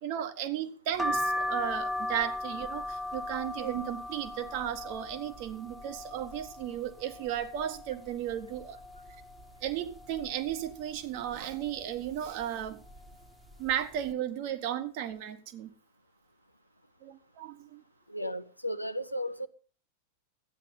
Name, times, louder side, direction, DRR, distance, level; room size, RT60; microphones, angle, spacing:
voice 1, 0.0-8.8 9.6-12.8 13.6-15.7 17.0-17.8 18.2-18.4, right 11 dB, 45° right, 9 dB, 1.5 m, -35 dB
sound 1, 1.0-6.7 7.1-7.9 8.3-8.4 8.6-9.7 10.2-10.5 11.3-11.6 12.4-12.7 12.9-13.1, left 1 dB, 5° right, 1.3 m, -36 dB
voice 2, 18.1-19.5, equal, 90° left, 10 dB, 0.7 m, -34 dB
13.5 x 9.6 x 5.6 m, 0.39 s
figure-of-eight pair, 90°, 0 cm